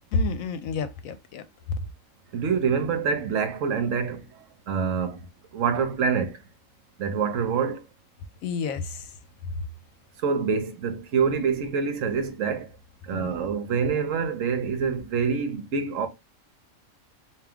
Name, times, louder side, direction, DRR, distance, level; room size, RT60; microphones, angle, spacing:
voice 1, 0.1-1.4 8.4-9.2 13.1-13.3, left 3 dB, 80° left, 1.0 m, -29 dB
voice 2, 2.3-6.4 7.0-7.8 10.2-12.7 13.0-16.1, right 6 dB, 70° right, 1.0 m, -26 dB
3.5 x 2.7 x 3.4 m
omnidirectional pair, 1.4 m